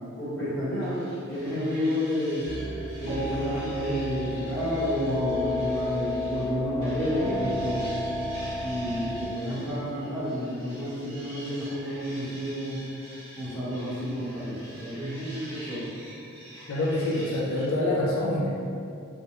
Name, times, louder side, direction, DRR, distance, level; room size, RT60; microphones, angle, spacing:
voice 1, 0.1-2.5 3.0-7.9 8.6-12.8 13.3-15.9, equal, 10° left, -14 dB, 0.8 m, -30 dB
sound 1, 0.8-6.5 6.8-17.7, equal, 65° right, 1.0 m, -46 dB
sound 2, 2.4-9.3, left 1 dB, 85° right, 0.5 m, -32 dB
voice 2, 16.7-18.5, left 1 dB, 70° left, -4 dB, 0.3 m, -26 dB
2.2 x 2.0 x 2.8 m, 2.5 s
head